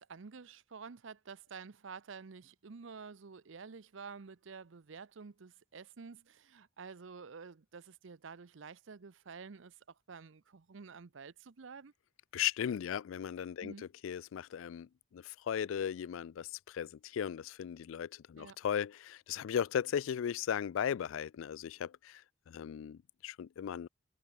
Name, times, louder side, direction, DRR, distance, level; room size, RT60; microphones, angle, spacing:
voice 1, 0.0-11.9 13.6-13.8 18.4-18.6, right 5 dB, 70° right, 0.6 m, -50 dB
voice 2, 12.3-23.9, left 8 dB, 75° left, 0.3 m, -37 dB
head